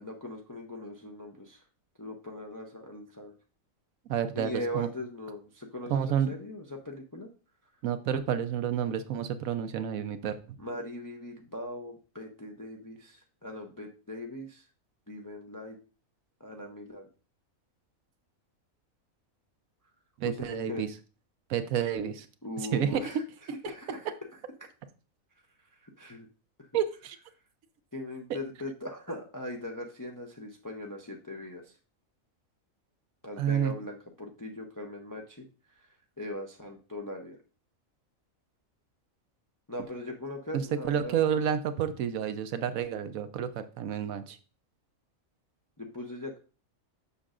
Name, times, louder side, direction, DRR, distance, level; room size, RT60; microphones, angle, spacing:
voice 1, 0.0-1.6 2.0-3.3 4.3-7.3 10.6-14.6 15.1-15.8 16.4-17.1 20.2-20.9 22.4-23.2 23.6-24.1 25.8-26.3 27.9-31.6 33.2-35.5 36.2-37.4 39.7-41.2 45.8-46.4, left 1 dB, 30° left, 2 dB, 0.4 m, -40 dB
voice 2, 4.1-4.9 5.9-6.3 7.8-10.4 20.2-20.9 21.5-22.3 22.6-23.0 26.7-27.2 33.4-33.7 40.5-44.4, right 8 dB, 80° right, 10 dB, 1.1 m, -30 dB
6.7 x 6.2 x 2.5 m, 0.35 s
omnidirectional pair, 1.4 m